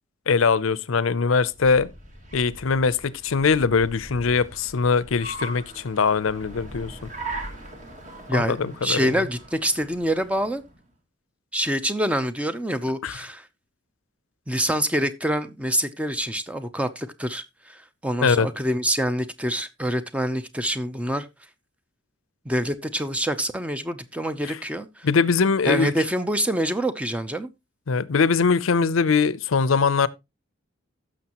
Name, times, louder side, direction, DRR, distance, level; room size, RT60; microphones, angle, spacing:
voice 1, 0.3-1.9 2.3-7.1 8.3-9.2 13.0-13.2 18.2-18.5 24.5-24.6 25.0-25.9 27.9-30.1, left 5 dB, 85° left, 0.6 m, -22 dB
Car, 1.3-10.8, right 2 dB, 40° right, 2.2 m, -40 dB
voice 2, 8.3-10.6 11.5-13.5 14.5-21.3 22.5-25.1 25.7-27.5, equal, 5° right, 0.6 m, -26 dB
15.5 x 6.4 x 2.9 m
head